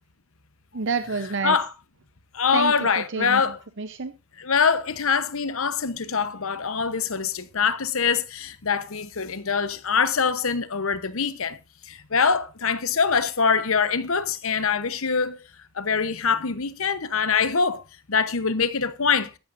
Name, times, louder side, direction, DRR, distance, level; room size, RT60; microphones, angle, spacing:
voice 1, 0.7-1.6 2.5-3.4 3.8-4.1, right 4 dB, 55° right, 0.8 m, -28 dB
voice 2, 1.4-1.7 2.3-3.6 4.4-11.6 11.9-15.4 15.7-17.8 18.1-19.3, left 5 dB, 65° left, 1.0 m, -24 dB
14.0 x 11.5 x 2.6 m
head